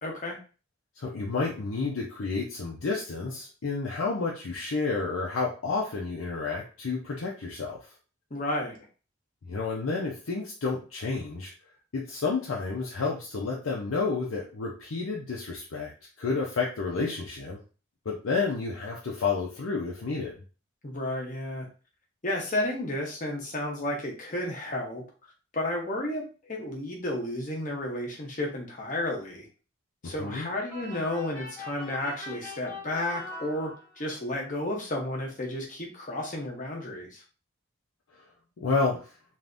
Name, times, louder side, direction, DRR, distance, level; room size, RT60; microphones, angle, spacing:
voice 1, 0.0-0.4 8.3-8.8 20.8-21.7 22.2-25.0 25.5-29.5 30.0-37.2, left 1 dB, 40° left, 0 dB, 0.9 m, -32 dB
voice 2, 1.0-7.8 9.5-11.5 11.9-15.9 16.2-17.6 18.1-20.3 30.0-30.5 38.6-39.1, left 4 dB, 90° left, -2 dB, 0.6 m, -30 dB
sound 1, 30.7-34.2, left 2 dB, 10° left, 0.8 m, -42 dB
3.4 x 2.6 x 2.6 m, 0.36 s
head